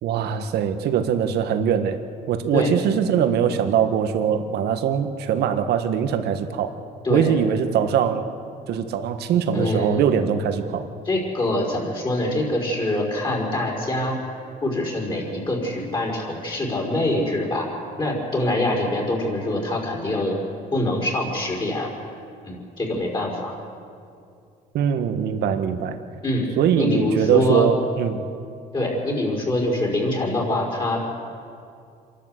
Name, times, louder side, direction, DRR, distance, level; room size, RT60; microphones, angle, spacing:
voice 1, 0.0-2.0 2.3-6.7 7.1-8.2 8.7-10.9 24.7-26.0 26.6-28.2, right 8 dB, 75° right, 8 dB, 1.5 m, -22 dB
voice 2, 7.0-7.4 9.5-10.0 11.1-14.2 14.6-17.7 18.0-20.4 20.7-21.9 22.4-23.6 26.2-26.5 26.8-27.7 28.7-31.0, left 1 dB, 25° left, -2 dB, 5.2 m, -24 dB
27.0 x 12.0 x 8.1 m, 2.4 s
cardioid pair, 110°, 17 cm